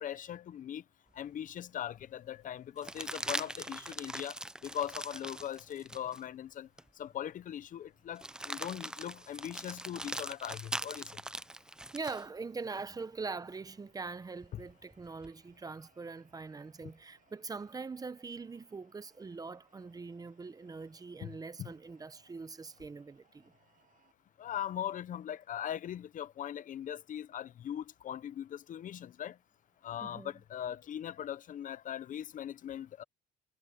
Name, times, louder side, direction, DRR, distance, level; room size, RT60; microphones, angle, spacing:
voice 1, 0.0-0.8 1.1-6.7 6.9-11.2 14.5-14.6 21.2-21.7 24.4-29.4 29.8-33.0, left 10 dB, 50° left, 0.8 m, -40 dB
sound 1, 1.2-1.3 2.8-6.2 6.8-6.9 8.2-12.3 14.4-15.3, right 1 dB, 5° right, 0.5 m, -41 dB
voice 2, 3.6-4.2 11.9-23.5 30.0-30.3, right 4 dB, 20° right, 0.9 m, -43 dB
sound 2, 12.1-24.1, right 9 dB, 50° right, 7.2 m, -71 dB
cardioid pair, 110°, 17 cm